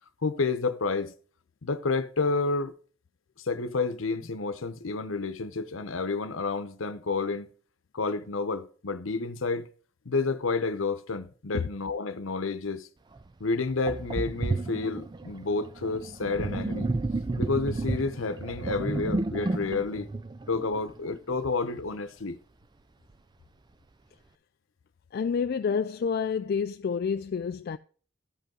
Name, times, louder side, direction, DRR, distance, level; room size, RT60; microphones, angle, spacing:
voice 1, 0.2-1.1 1.6-2.7 3.4-7.5 7.9-9.7 10.0-12.9 13.4-16.9 17.4-20.1 20.5-22.4, left 3 dB, 90° left, 0.9 m, -30 dB
Sink (filling or washing), 13.2-13.3 13.9-21.2, right 2 dB, 20° right, 0.4 m, -32 dB
voice 2, 25.1-27.8, left 6 dB, 50° left, 0.3 m, -28 dB
14.5 x 5.4 x 3.8 m
head